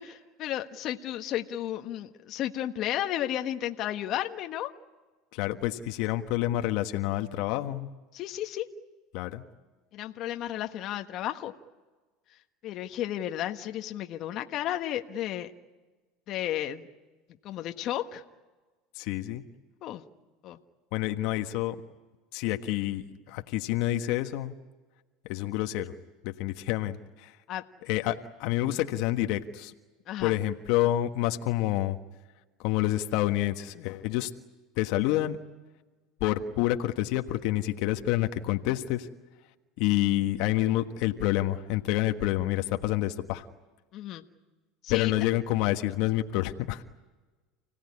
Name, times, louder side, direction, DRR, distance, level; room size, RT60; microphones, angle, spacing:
voice 1, 0.0-4.7 8.1-8.7 9.9-11.5 12.3-12.4 12.6-15.5 16.3-16.9 17.4-18.2 19.8-20.0 20.4-20.6 27.5-27.6 30.1-30.4 43.9-44.2 44.8-45.1, left 12 dB, 50° left, 5 dB, 1.4 m, -33 dB
voice 2, 5.3-7.9 9.1-9.4 19.0-19.4 20.9-21.8 22.3-24.5 25.3-25.9 26.2-27.3 27.9-29.7 30.2-32.0 32.6-34.3 34.8-35.4 36.2-39.1 39.8-43.4 44.9-46.8, left 15 dB, 65° left, 6 dB, 1.4 m, -28 dB
30.0 x 17.5 x 9.8 m, 1.3 s
supercardioid pair, 115°, 0 cm